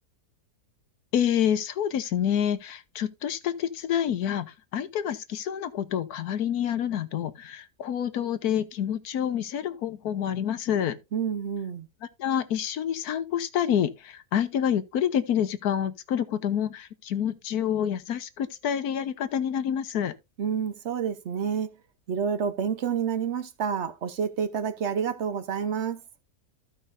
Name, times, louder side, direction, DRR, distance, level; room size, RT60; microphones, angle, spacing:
voice 1, 1.1-11.0 12.2-20.1, left 9 dB, 70° left, 1.3 m, -28 dB
voice 2, 11.1-11.9 20.4-21.8 22.1-26.0, right 7 dB, 50° right, 1.0 m, -29 dB
15.0 x 5.4 x 2.6 m
omnidirectional pair, 1.7 m